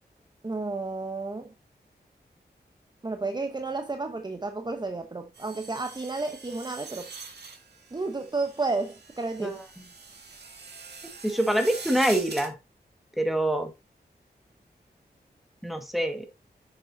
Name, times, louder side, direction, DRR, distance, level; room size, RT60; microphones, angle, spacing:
voice 1, 0.4-1.5 3.0-7.1 7.9-9.6, right 3 dB, 25° right, 0.8 m, -32 dB
long glass break in reverse, 5.3-12.5, right 4 dB, 75° right, 1.9 m, -43 dB
voice 2, 11.2-12.5 13.2-13.7 15.6-16.3, right 1 dB, ahead, 1.7 m, -25 dB
8.4 x 6.8 x 2.7 m
wide cardioid pair, 75°, 17 cm